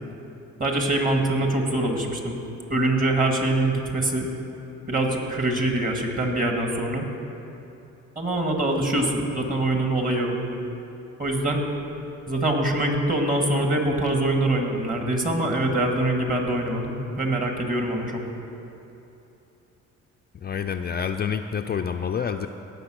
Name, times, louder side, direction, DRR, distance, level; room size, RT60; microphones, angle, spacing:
voice 1, 0.6-2.4 2.7-4.3 4.9-7.0 8.2-10.4 11.2-11.6 12.3-18.2, right 1 dB, 25° right, 2 dB, 2.1 m, -24 dB
voice 2, 20.4-22.5, left 7 dB, 35° left, 6 dB, 0.4 m, -28 dB
17.0 x 6.6 x 6.3 m, 2.9 s
cardioid pair, 90°, 30 cm